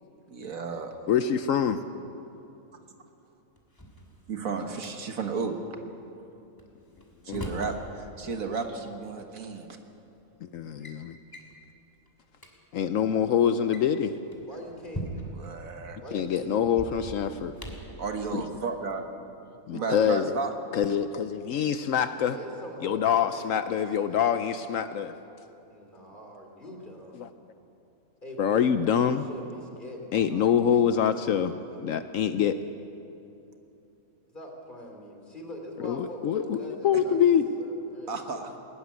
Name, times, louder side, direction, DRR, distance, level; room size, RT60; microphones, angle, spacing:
voice 1, 0.3-1.1 4.3-5.6 7.3-9.7 15.4-16.0 18.0-19.1 19.7-20.5 38.1-38.6, right 4 dB, 70° right, 5 dB, 1.8 m, -33 dB
voice 2, 1.1-1.8 7.3-7.6 10.4-11.1 12.7-14.2 16.1-17.5 19.7-20.4 20.7-22.4 22.8-25.1 27.2-27.3 28.4-29.3 30.1-32.6 35.8-37.5, left 8 dB, 70° left, 10 dB, 1.0 m, -25 dB
Drawer open or close, 3.6-4.9 6.6-7.8 9.0-9.1 10.0-10.2 10.5-11.0 11.3-11.6 12.1-12.2 12.3-12.5 13.5-15.5 16.6-18.0, right 1 dB, 15° left, 2.5 m, -41 dB
voice 3, 14.4-15.1 15.6-16.6 22.2-24.2 25.7-27.2 28.2-28.7 29.0-31.8 34.3-38.4, left 1 dB, 35° left, 2 dB, 3.0 m, -43 dB
19.0 x 14.0 x 9.8 m, 2.8 s
omnidirectional pair, 1.5 m